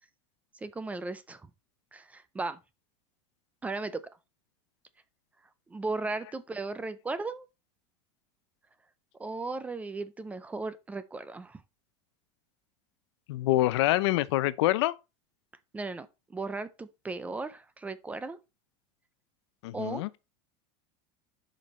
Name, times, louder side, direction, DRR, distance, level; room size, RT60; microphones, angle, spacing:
voice 1, 0.6-1.5 1.9-2.6 3.6-4.0 5.7-7.5 9.2-11.6 15.7-18.4 19.7-20.0, right 3 dB, 10° right, 0.4 m, -36 dB
voice 2, 13.3-14.9 19.6-20.1, left 16 dB, 70° left, 0.6 m, -26 dB
10.5 x 5.2 x 3.1 m
supercardioid pair, 150°, 14 cm